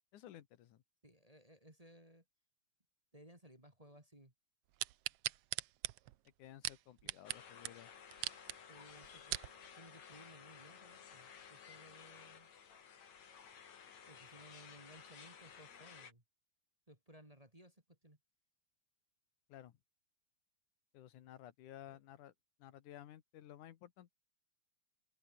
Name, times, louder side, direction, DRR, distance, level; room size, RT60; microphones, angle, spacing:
voice 1, 0.1-0.8 6.4-7.9 19.5-19.7 20.9-22.3 22.6-24.1, left 11 dB, 80° left, 2.8 m, -55 dB
voice 2, 1.0-2.2 3.1-4.3 7.0-7.1 8.7-9.4 9.7-12.5 14.1-16.2 16.9-18.2 21.9-22.0, right 1 dB, 10° right, 2.7 m, -60 dB
sound 1, 4.8-7.4 7.6-7.7 8.1-8.6 9.0-9.5 10.1-10.2, right 15 dB, 75° right, 1.5 m, -40 dB
sound 2, 7.2-16.1, left 7 dB, 65° left, 3.9 m, -56 dB
omnidirectional pair, 3.6 m